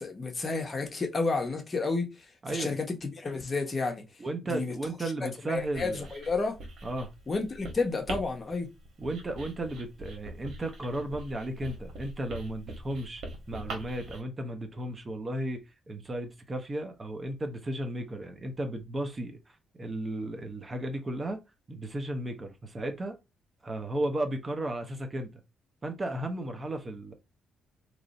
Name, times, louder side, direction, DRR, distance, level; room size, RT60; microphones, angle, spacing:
voice 1, 0.0-2.1 2.5-4.0 4.5-4.7 5.5-6.6 7.3-8.7, left 3 dB, 30° left, 1.0 m, -31 dB
voice 2, 2.4-2.8 4.2-6.1 6.8-7.1 9.0-21.4 21.7-23.2 23.6-25.3 25.8-27.1, right 1 dB, 30° right, 0.8 m, -34 dB
Writing, 5.6-14.2, right 1 dB, 65° right, 1.4 m, -43 dB
3.0 x 2.6 x 4.0 m
cardioid pair, 90°, 0 cm